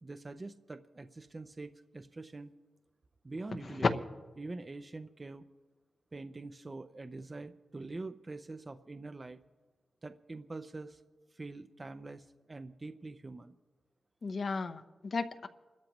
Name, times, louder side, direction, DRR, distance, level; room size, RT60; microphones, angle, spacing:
voice 1, 0.0-2.5 3.2-3.9 4.4-5.4 6.1-9.4 10.0-11.0 11.3-13.5, right 3 dB, 30° right, 8 dB, 0.5 m, -44 dB
voice 2, 3.5-3.9 14.2-15.5, left 4 dB, 50° left, 10 dB, 0.8 m, -33 dB
29.0 x 13.0 x 3.0 m, 1.3 s
wide cardioid pair, 100°, 0 cm